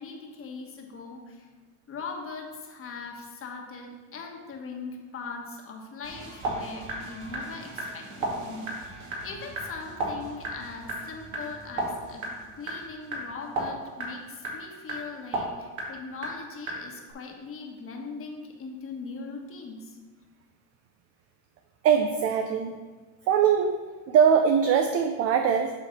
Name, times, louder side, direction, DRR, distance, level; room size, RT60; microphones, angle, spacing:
voice 1, 0.0-1.5 1.9-12.2 12.5-20.0, left 4 dB, 30° left, 1 dB, 1.3 m, -40 dB
sound 1, 6.0-15.4 15.6-15.8 16.2-16.3 16.5-16.7 17.1-17.2, right 2 dB, 70° right, 2.3 m, -35 dB
voice 2, 21.8-22.7 23.3-23.8 24.1-25.7, right 7 dB, 35° right, 6 dB, 0.4 m, -21 dB
8.1 x 3.2 x 5.8 m, 1.4 s
supercardioid pair, 110°, 45 cm